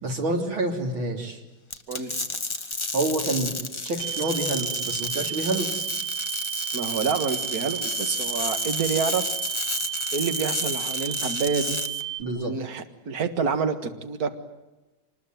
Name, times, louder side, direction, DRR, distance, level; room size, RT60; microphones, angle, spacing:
voice 1, 0.0-1.4 2.9-3.5 3.8-5.9 12.2-12.5, right 2 dB, 80° right, 2 dB, 4.2 m, -28 dB
sound 1, 1.7-12.0, left 3 dB, 20° left, 1.0 m, -31 dB
sound 2, 4.0-12.2, right 14 dB, 65° right, 1.7 m, -32 dB
voice 2, 6.7-9.4 10.1-11.8 12.3-14.3, right 5 dB, 50° right, 7 dB, 2.1 m, -28 dB
26.0 x 20.5 x 9.3 m, 1.1 s
omnidirectional pair, 2.2 m